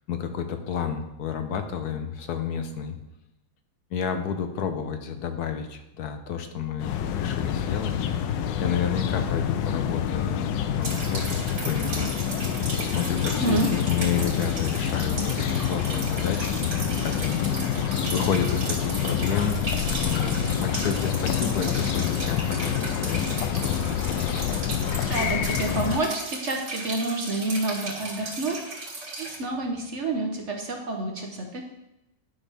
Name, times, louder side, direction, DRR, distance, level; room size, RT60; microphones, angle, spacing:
voice 1, 0.1-3.0 3.9-8.0 8.6-12.1 12.8-17.8 18.1-19.6 19.9-24.5, left 7 dB, 70° left, 7 dB, 1.2 m, -30 dB
sound 1, 6.8-26.0, left 8 dB, 90° left, 1.3 m, -27 dB
sound 2, 10.8-29.4, right 2 dB, 70° right, 2.5 m, -36 dB
voice 2, 13.4-13.7 25.1-28.6 29.2-31.6, right 2 dB, 50° right, 2 dB, 1.0 m, -28 dB
10.0 x 5.9 x 3.4 m, 0.90 s
omnidirectional pair, 1.9 m